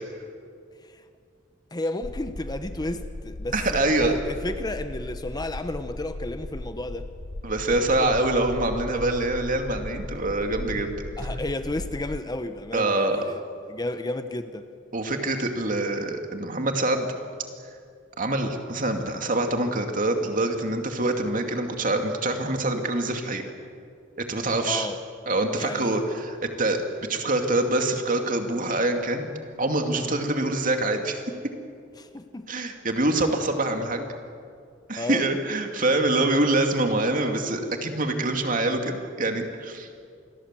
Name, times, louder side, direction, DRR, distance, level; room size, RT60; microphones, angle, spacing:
voice 1, 1.7-7.1 7.7-8.3 11.2-13.4 13.7-14.7 24.6-25.0 25.6-26.0 30.0-30.2 32.0-32.5 34.9-35.3, left 1 dB, 20° left, 0.9 m, -33 dB
sound 1, 2.0-12.2, left 1 dB, 70° left, 1.0 m, -37 dB
voice 2, 3.5-4.2 7.4-11.0 12.7-13.2 14.9-17.1 18.2-23.4 24.2-24.9 25.3-26.8 27.1-29.3 29.6-31.2 32.5-34.1 34.9-39.9, right 2 dB, 45° right, 2.5 m, -25 dB
27.0 x 21.0 x 7.6 m
head